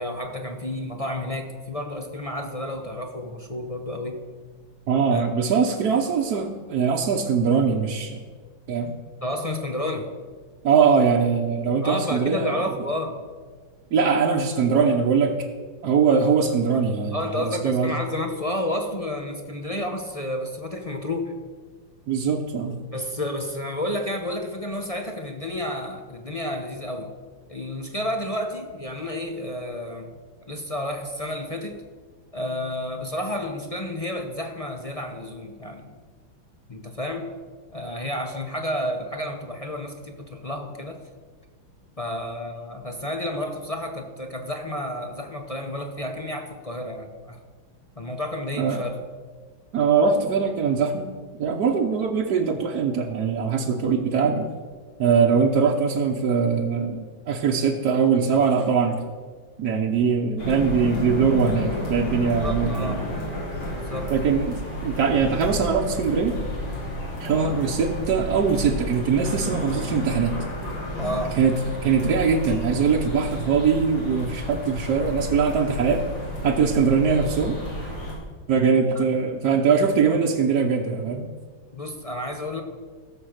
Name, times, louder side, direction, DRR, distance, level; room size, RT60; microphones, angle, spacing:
voice 1, 0.0-4.2 5.1-5.3 5.7-5.8 9.2-10.1 11.8-13.2 17.1-21.3 22.9-27.1 27.5-30.1 30.5-31.8 32.3-35.9 36.7-37.3 37.7-41.0 42.0-47.4 48.0-48.9 62.4-63.0 63.7-64.1 71.0-71.4 78.9-79.0 81.7-82.6, left 1 dB, 35° left, 3 dB, 0.5 m, -31 dB
voice 2, 4.9-8.2 8.7-8.9 10.6-12.6 13.9-15.4 15.8-18.0 22.1-22.8 48.6-48.8 49.7-51.1 51.4-54.5 55.0-59.0 59.6-63.0 64.1-66.4 67.2-70.4 71.4-71.6 71.8-76.1 76.4-77.6 78.5-81.3, right 6 dB, 60° right, 0 dB, 1.3 m, -22 dB
sound 1, 60.4-78.1, left 1 dB, 80° left, 4.9 m, -31 dB
16.0 x 7.2 x 6.5 m, 1.5 s
omnidirectional pair, 2.3 m